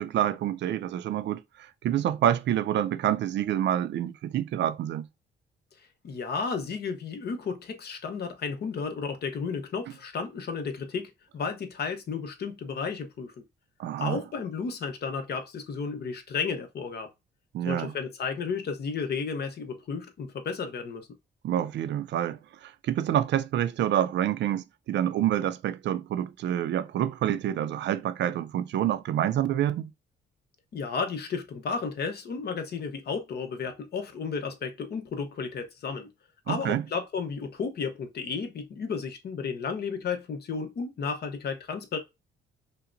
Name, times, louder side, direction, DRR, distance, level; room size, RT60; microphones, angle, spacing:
voice 1, 0.0-5.1 13.8-14.2 17.5-17.9 21.4-29.9 36.5-36.9, right 11 dB, 65° right, 0.4 m, -27 dB
voice 2, 6.0-13.4 14.0-17.1 17.7-21.1 30.7-36.1 36.5-42.0, left 5 dB, 55° left, 0.8 m, -33 dB
5.6 x 2.1 x 2.5 m
cardioid pair, 90°, 20 cm